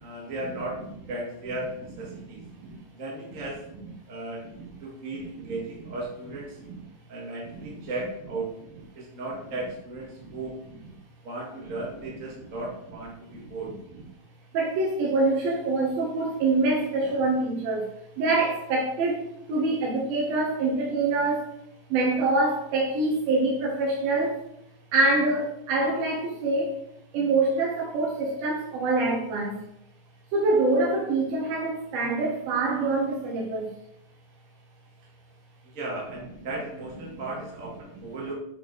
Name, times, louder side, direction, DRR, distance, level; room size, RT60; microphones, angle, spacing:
voice 1, 0.0-2.4 2.9-3.6 4.1-4.4 4.8-6.6 7.1-8.5 8.9-10.6 11.2-13.7 35.7-38.3, right 2 dB, 35° right, -4 dB, 1.3 m, -36 dB
voice 2, 14.5-17.9 18.2-21.5 21.9-24.4 24.9-26.7 27.1-29.6 30.3-33.7 37.1-37.2, right 2 dB, 75° right, -2 dB, 3.1 m, -25 dB
8.5 x 5.2 x 3.9 m, 0.77 s
omnidirectional pair, 4.2 m